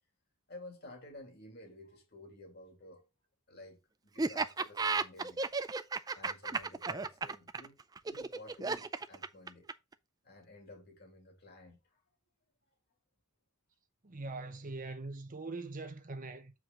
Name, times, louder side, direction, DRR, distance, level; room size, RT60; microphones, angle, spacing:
voice 1, 0.5-3.1 3.5-5.6 6.1-7.8 8.1-9.7 10.2-12.0, left 1 dB, 45° left, 2.4 m, -53 dB
Laughter, 4.2-9.9, right 4 dB, 15° right, 0.4 m, -34 dB
voice 2, 14.0-16.5, right 3 dB, 35° right, 0.8 m, -42 dB
7.7 x 4.8 x 3.8 m
head